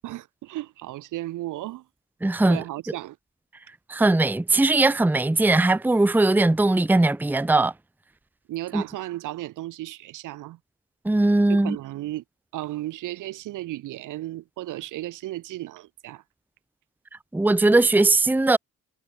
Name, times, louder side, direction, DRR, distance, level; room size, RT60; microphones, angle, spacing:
voice 1, 0.0-1.8 2.4-3.2 8.5-10.6 11.5-12.2 12.5-16.2, right 16 dB, 90° right, 6.2 m, -34 dB
voice 2, 2.2-2.6 3.9-7.7 8.7-8.8 11.0-11.8 17.3-18.6, right 2 dB, 5° right, 0.8 m, -20 dB
cardioid pair, 90°, 30 cm